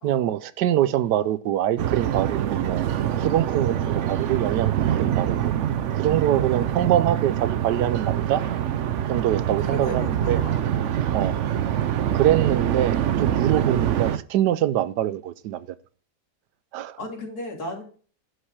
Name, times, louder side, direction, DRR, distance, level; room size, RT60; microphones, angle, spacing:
voice 1, 0.0-2.9 3.2-5.5 5.9-8.4 9.1-10.4 11.1-11.3 12.1-15.7 16.7-17.0, right 12 dB, 85° right, 1.2 m, -24 dB
sound 1, 1.8-14.2, right 10 dB, 60° right, 0.8 m, -25 dB
voice 2, 9.6-10.7 11.2-11.6 17.0-17.8, left 2 dB, 65° left, 3.3 m, -35 dB
11.0 x 6.6 x 4.8 m
omnidirectional pair, 1.8 m